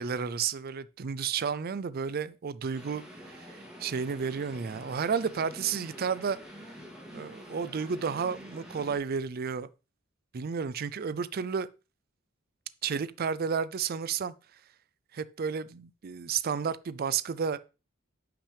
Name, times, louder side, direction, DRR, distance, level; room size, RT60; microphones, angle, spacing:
voice 1, 0.0-6.4 7.1-9.7 10.3-11.7 12.8-14.3 15.1-17.6, right 6 dB, 45° right, 0.4 m, -32 dB
sound 1, 2.7-9.0, equal, 5° right, 2.4 m, -47 dB
10.0 x 5.9 x 3.3 m
head